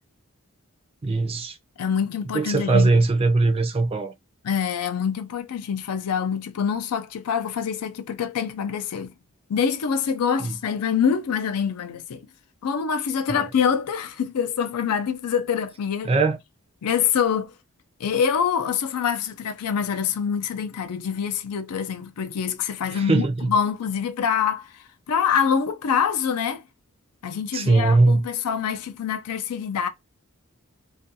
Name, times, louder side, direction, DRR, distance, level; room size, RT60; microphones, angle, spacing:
voice 1, 1.0-1.6 2.3-4.1 10.4-10.6 13.3-13.5 16.0-16.4 22.9-23.5 27.5-28.3, right 3 dB, 25° right, 0.4 m, -20 dB
voice 2, 1.8-2.9 4.4-9.1 9.5-12.3 12.6-16.1 16.8-17.5 18.0-26.6 27.2-29.9, left 7 dB, 90° left, 0.4 m, -25 dB
2.4 x 2.2 x 2.7 m
head